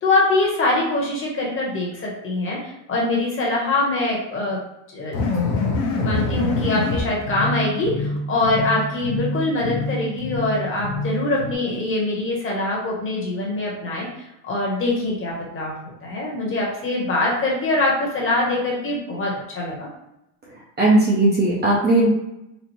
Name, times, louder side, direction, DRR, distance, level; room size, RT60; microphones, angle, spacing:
voice 1, 0.0-4.6 4.9-5.2 5.9-14.1 14.4-15.7 16.0-19.9, left 2 dB, 25° left, -3 dB, 1.0 m, -23 dB
sound 1, 5.1-11.5, left 2 dB, 50° left, 0.8 m, -26 dB
voice 2, 20.8-22.1, right 2 dB, 20° right, -4 dB, 0.6 m, -17 dB
4.2 x 2.4 x 3.0 m, 0.87 s
cardioid pair, 140°, 46 cm